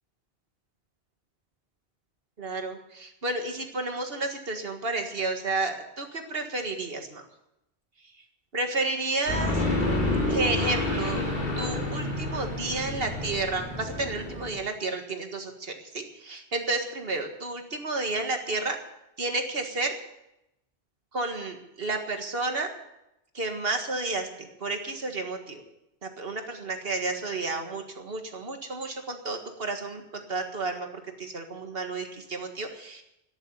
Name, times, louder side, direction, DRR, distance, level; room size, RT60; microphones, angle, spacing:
voice 1, 2.4-7.2 8.5-9.6 10.3-11.2 11.6-18.8 19.2-20.0 21.1-22.7 23.3-25.6 26.0-33.0, right 3 dB, 60° right, 4 dB, 2.0 m, -31 dB
sound 1, 9.3-14.5, left 2 dB, 45° left, 4.6 m, -29 dB
13.5 x 10.5 x 8.2 m, 0.87 s
omnidirectional pair, 1.1 m